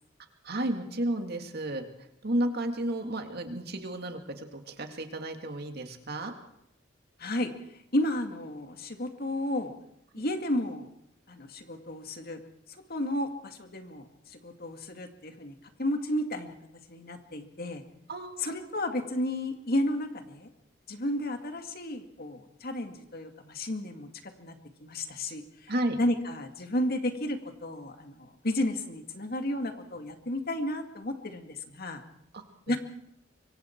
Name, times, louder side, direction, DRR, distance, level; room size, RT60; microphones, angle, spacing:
voice 1, 0.4-1.8 2.2-6.3 18.1-18.7 25.7-26.0 32.3-32.4, right 1 dB, 55° right, 5 dB, 2.3 m, -32 dB
voice 2, 7.2-7.5 7.9-9.7 10.1-10.9 11.3-12.4 12.9-14.0 14.4-16.6 16.9-17.8 18.4-20.5 20.9-24.5 24.8-25.4 26.0-32.0 32.7-32.8, left 1 dB, 50° left, 6 dB, 2.2 m, -32 dB
24.5 x 24.5 x 4.6 m, 0.76 s
head